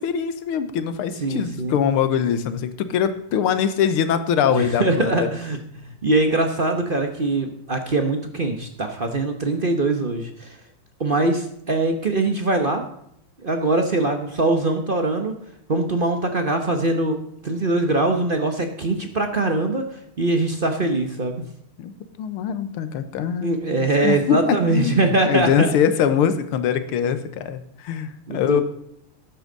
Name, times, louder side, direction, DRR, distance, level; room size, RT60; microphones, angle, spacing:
voice 1, 0.0-5.3 21.8-23.6 24.0-28.6, left 8 dB, 80° left, 11 dB, 1.8 m, -23 dB
voice 2, 1.2-1.7 4.5-10.6 11.0-12.8 13.4-15.3 15.7-17.2 17.4-21.4 23.4-25.7 28.3-28.6, right 2 dB, 45° right, 5 dB, 0.7 m, -22 dB
13.0 x 9.9 x 3.9 m, 0.72 s
omnidirectional pair, 2.4 m